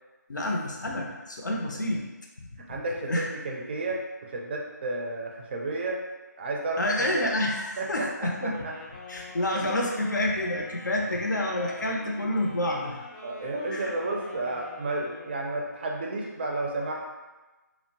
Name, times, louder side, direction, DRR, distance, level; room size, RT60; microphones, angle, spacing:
voice 1, 0.3-2.0 2.4-2.5 3.1-3.3 6.8-8.5 9.1-13.0 13.7-13.9, left 1 dB, 75° left, 0 dB, 0.6 m, -28 dB
voice 2, 2.7-6.0 6.4-6.8 7.1-7.3 7.8-8.8 9.6-9.7 13.2-17.0, right 2 dB, 35° right, 0 dB, 0.4 m, -32 dB
Wind instrument woodwind instrument, 8.4-15.6, left 1 dB, 25° left, 0.6 m, -45 dB
2.7 x 2.1 x 2.8 m, 1.1 s
figure-of-eight pair, 155°, 10 cm